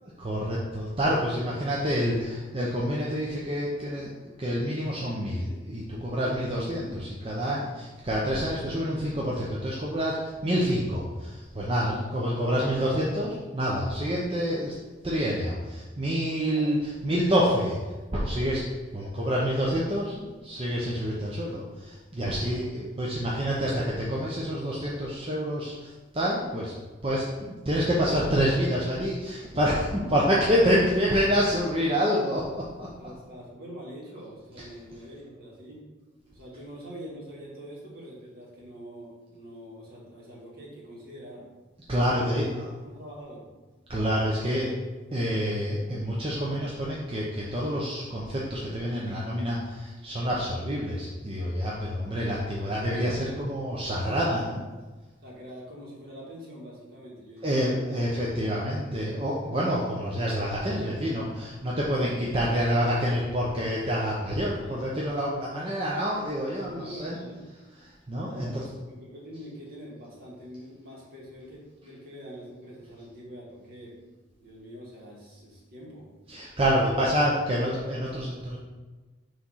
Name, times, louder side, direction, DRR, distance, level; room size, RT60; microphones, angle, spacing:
voice 1, 0.2-14.7 15.0-16.8 17.0-17.8 18.1-26.7 27.0-32.9 41.9-42.5 43.9-44.8 45.1-54.6 57.4-67.2 68.1-68.6 76.3-78.6, equal, 30° right, -5 dB, 0.8 m, -27 dB
voice 2, 22.3-22.7 30.0-30.1 31.0-31.1 33.0-35.8 36.2-41.5 42.2-42.6 42.8-43.4 51.8-52.0 55.2-57.6 58.4-58.7 62.0-62.1 64.4-64.8 65.5-65.9 66.6-67.4 68.3-73.9 74.4-76.1 76.7-77.2, equal, 50° right, -5 dB, 2.0 m, -44 dB
6.1 x 3.4 x 5.7 m, 1.2 s
head